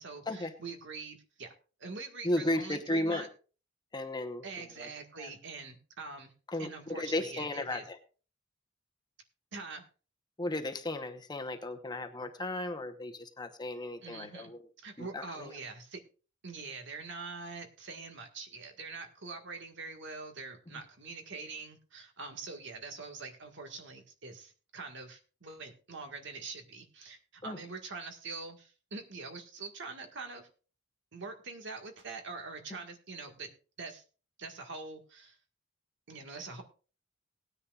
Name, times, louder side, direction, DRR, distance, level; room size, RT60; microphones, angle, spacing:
voice 1, 0.0-1.5 1.8-3.3 4.4-6.3 6.6-7.8 9.5-9.8 14.0-14.5 14.8-16.0 16.4-30.5 31.1-33.5 33.8-34.0 34.4-35.4 36.1-36.6, right 4 dB, 60° right, 5 dB, 1.7 m, -44 dB
voice 2, 2.2-3.3 3.9-4.9 5.2-5.3 6.5-8.0 10.4-14.6 15.0-15.6 27.4-27.6, left 1 dB, 20° left, 5 dB, 0.9 m, -35 dB
18.5 x 9.8 x 2.4 m, 0.36 s
head